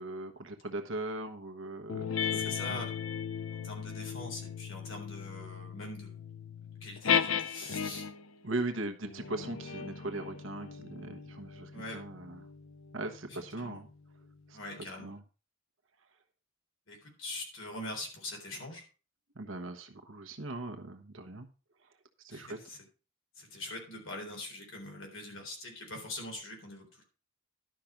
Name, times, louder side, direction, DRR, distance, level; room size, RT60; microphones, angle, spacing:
voice 1, 0.0-2.8 8.4-12.4 12.9-13.9 14.5-15.2 19.3-21.5 22.2-22.6, right 2 dB, 70° right, 4 dB, 1.2 m, -39 dB
sound 1, 1.9-8.3 9.0-14.0, left 7 dB, 85° left, 0.7 m, -36 dB
voice 2, 2.3-2.9 3.5-6.2 6.8-8.1 11.7-12.0 13.3-13.8 14.5-15.1 16.9-18.8 22.3-22.8 23.4-27.0, left 2 dB, 70° left, 1 dB, 3.8 m, -43 dB
11.5 x 5.9 x 5.2 m, 0.35 s
head